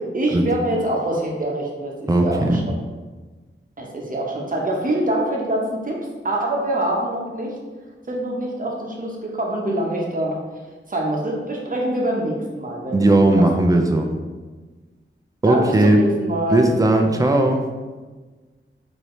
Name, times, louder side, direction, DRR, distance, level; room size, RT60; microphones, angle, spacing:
voice 1, 0.0-2.7 3.8-6.0 6.2-7.5 8.1-10.4 10.9-13.0 13.4-13.5 15.4-16.7, right 1 dB, 40° right, -2 dB, 0.9 m, -24 dB
voice 2, 2.1-2.6 12.9-14.1 15.4-16.0 16.5-17.6, right 1 dB, 15° right, 3 dB, 0.5 m, -17 dB
4.6 x 2.8 x 3.1 m, 1.3 s
wide cardioid pair, 80°, 21 cm